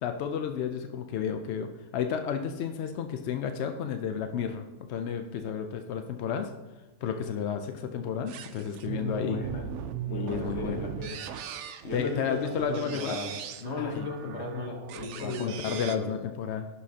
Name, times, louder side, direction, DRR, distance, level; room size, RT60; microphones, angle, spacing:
voice 1, 0.0-4.6 4.9-6.5 7.0-9.4 10.1-10.8 11.9-13.2 13.8-14.1 15.1-16.7, left 7 dB, 70° left, 6 dB, 0.6 m, -32 dB
sound 1, 8.3-16.0, right 9 dB, 70° right, 0.7 m, -39 dB
voice 2, 8.9-9.7 10.1-11.2 11.8-13.3 13.6-16.1, left 2 dB, 45° left, 1 dB, 1.3 m, -36 dB
11.0 x 5.6 x 2.8 m, 1.1 s
omnidirectional pair, 1.6 m